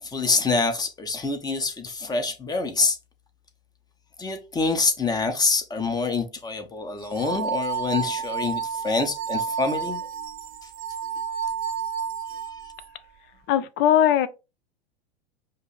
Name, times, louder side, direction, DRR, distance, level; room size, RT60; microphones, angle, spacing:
voice 1, 0.0-3.0 4.2-10.0 10.6-10.7 12.6-12.7, left 4 dB, 15° left, 0.9 m, -26 dB
sound 1, 7.0-12.9, right 7 dB, 30° right, 0.6 m, -31 dB
voice 2, 13.5-14.3, left 10 dB, 40° left, 0.6 m, -19 dB
5.2 x 2.0 x 4.1 m
hypercardioid pair, 105°, 30 cm